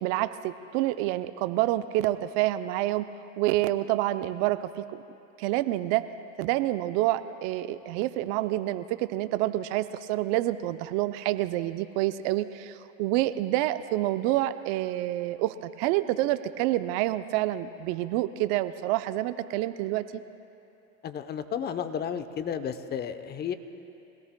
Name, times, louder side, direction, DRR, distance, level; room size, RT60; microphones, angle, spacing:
voice 1, 0.0-3.1 3.4-5.0 5.4-6.0 6.4-20.2, right 15 dB, 50° right, 12 dB, 0.6 m, -28 dB
voice 2, 21.0-23.5, left 8 dB, 25° left, 10 dB, 0.8 m, -32 dB
25.0 x 18.0 x 2.2 m, 2.9 s
hypercardioid pair, 100°, 40 cm